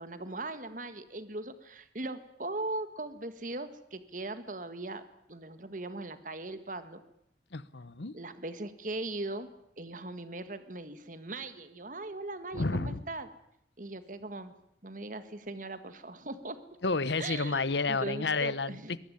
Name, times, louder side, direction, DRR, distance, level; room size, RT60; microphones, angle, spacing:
voice 1, 0.0-7.0 8.1-9.5 9.8-13.3 13.8-14.5 14.8-16.6 17.2-19.0, right 2 dB, 45° right, 11 dB, 1.7 m, -39 dB
voice 2, 7.5-8.2 12.5-13.0 16.8-19.0, left 3 dB, 75° left, 17 dB, 1.1 m, -30 dB
23.0 x 19.5 x 9.9 m, 0.74 s
head